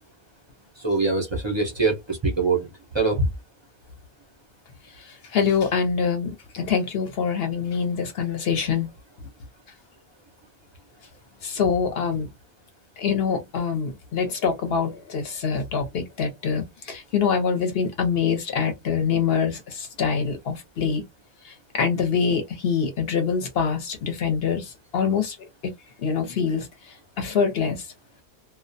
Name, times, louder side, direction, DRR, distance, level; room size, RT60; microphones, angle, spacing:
voice 1, 0.8-2.7 2.9-3.3, right 3 dB, 35° right, 0.4 m, -23 dB
voice 2, 5.3-8.9 11.4-12.3 13.0-21.0 21.4-25.4 26.0-26.7 27.2-27.8, left 6 dB, 55° left, 0.8 m, -25 dB
2.3 x 2.1 x 2.6 m
omnidirectional pair, 1.4 m